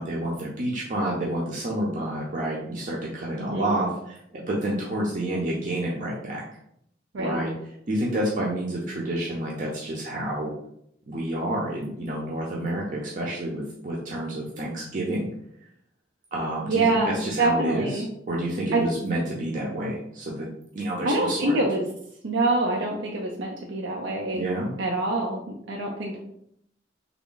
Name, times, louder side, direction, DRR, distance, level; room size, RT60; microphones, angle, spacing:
voice 1, 0.0-6.4 7.2-7.5 7.9-10.5 11.1-15.3 16.3-20.5 20.7-21.6 24.3-24.7, right 1 dB, 45° right, -4 dB, 0.6 m, -29 dB
voice 2, 3.4-3.8 7.1-7.4 16.7-18.1 18.7-18.8 21.0-21.8 22.2-24.5 24.8-25.4 25.7-26.2, right 2 dB, 90° right, 0 dB, 0.5 m, -25 dB
3.5 x 2.1 x 3.8 m, 0.72 s
head